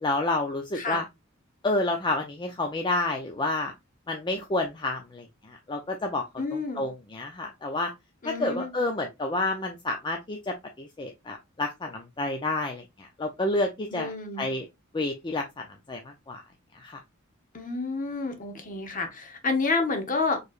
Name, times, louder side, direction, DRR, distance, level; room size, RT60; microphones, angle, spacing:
voice 1, 0.0-1.0 1.6-3.7 4.1-6.2 6.5-7.9 8.2-14.7 14.9-16.4 16.7-17.0, left 2 dB, 20° left, 0.5 m, -30 dB
voice 2, 6.4-6.8 8.2-8.7 13.9-14.5 17.5-20.4, left 3 dB, 40° left, 1.0 m, -29 dB
4.6 x 3.1 x 2.4 m
head